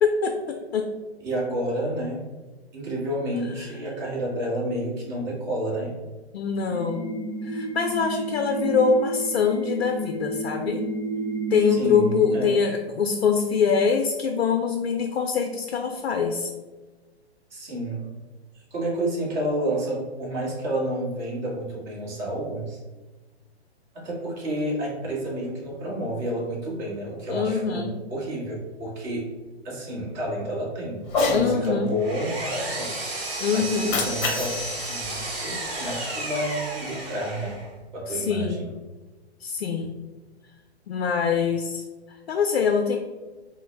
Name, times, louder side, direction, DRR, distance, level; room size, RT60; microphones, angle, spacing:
voice 1, 0.0-0.9 3.3-3.7 6.3-7.1 7.4-10.8 11.5-16.5 27.3-28.0 31.3-31.9 33.4-34.0 38.1-38.6 39.4-39.9 40.9-43.0, left 6 dB, 70° left, 5 dB, 0.5 m, -24 dB
voice 2, 1.2-2.2 2.7-6.0 11.7-12.5 17.5-18.1 18.5-22.8 23.9-29.3 29.6-33.0 33.5-34.5 34.8-37.6 37.9-38.6, right 1 dB, 40° right, -3 dB, 1.3 m, -30 dB
sound 1, 6.7-12.4, right 2 dB, 20° right, 0.4 m, -31 dB
Cat, 31.0-31.5 33.7-36.0, left 3 dB, 30° left, 0.7 m, -28 dB
Power tool, 31.6-37.7, right 2 dB, 65° right, 1.3 m, -33 dB
3.8 x 2.1 x 3.2 m, 1.2 s
figure-of-eight pair, 125°, 33 cm